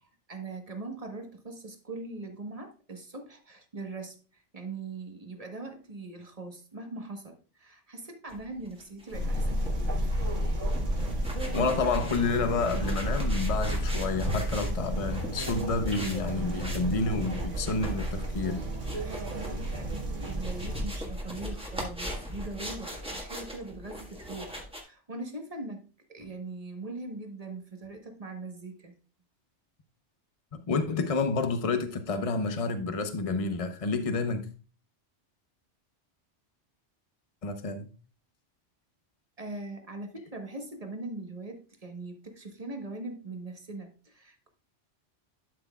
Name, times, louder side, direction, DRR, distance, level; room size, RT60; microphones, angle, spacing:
voice 1, 0.3-4.2 4.5-10.1 19.0-28.9 39.4-44.5, right 2 dB, 30° right, 1.3 m, -41 dB
sound 1, 8.3-24.8, equal, 5° right, 1.6 m, -40 dB
sound 2, 9.1-20.8, right 1 dB, 85° right, 2.0 m, -31 dB
voice 2, 11.5-18.7 30.5-34.5 37.4-37.9, left 4 dB, 35° left, 0.9 m, -29 dB
12.0 x 6.2 x 2.4 m
omnidirectional pair, 1.2 m